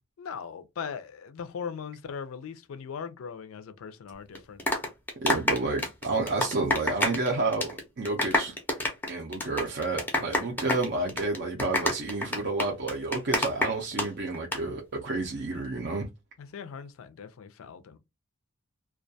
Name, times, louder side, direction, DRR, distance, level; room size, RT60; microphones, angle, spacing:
voice 1, 0.2-4.6 16.4-18.0, left 6 dB, 70° left, 0.4 m, -39 dB
sound 1, 4.3-7.3 7.5-14.1 14.3-14.6, left 1 dB, 10° left, 0.4 m, -27 dB
voice 2, 5.2-8.5 9.1-16.1, right 3 dB, 50° right, 0.5 m, -30 dB
2.3 x 2.2 x 2.6 m
head